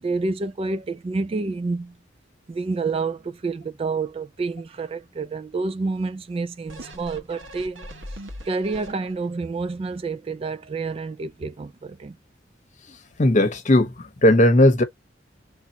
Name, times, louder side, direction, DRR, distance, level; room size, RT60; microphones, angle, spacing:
voice 1, 0.0-2.0 2.5-7.9 8.4-12.2, right 3 dB, 30° right, 0.3 m, -28 dB
sound 1, 6.7-9.4 9.9-10.0, equal, 75° right, 1.5 m, -40 dB
voice 2, 13.2-14.8, left 1 dB, 40° left, 1.0 m, -17 dB
3.5 x 2.9 x 4.0 m
head